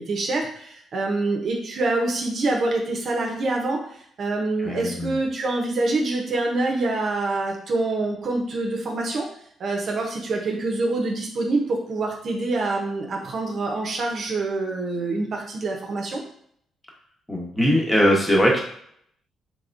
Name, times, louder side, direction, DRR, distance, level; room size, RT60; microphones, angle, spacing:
voice 1, 0.0-3.8 4.2-9.3 9.6-16.2, right 2 dB, 55° right, 0 dB, 0.8 m, -25 dB
voice 2, 4.6-5.2 17.3-18.6, equal, 10° left, -2 dB, 1.1 m, -20 dB
3.5 x 3.4 x 2.6 m, 0.65 s
cardioid pair, 90°, 0 cm